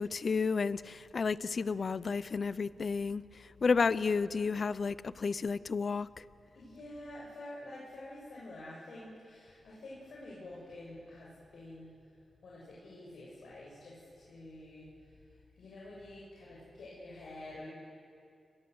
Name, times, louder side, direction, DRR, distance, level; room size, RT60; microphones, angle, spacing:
voice 1, 0.0-6.2, left 5 dB, 55° left, 17 dB, 0.7 m, -32 dB
voice 2, 3.6-4.0 6.5-11.9 12.4-15.1 15.6-17.7, left 1 dB, 80° left, -6 dB, 7.3 m, -48 dB
29.5 x 21.5 x 8.0 m, 2.5 s
wide cardioid pair, 90°, 0 cm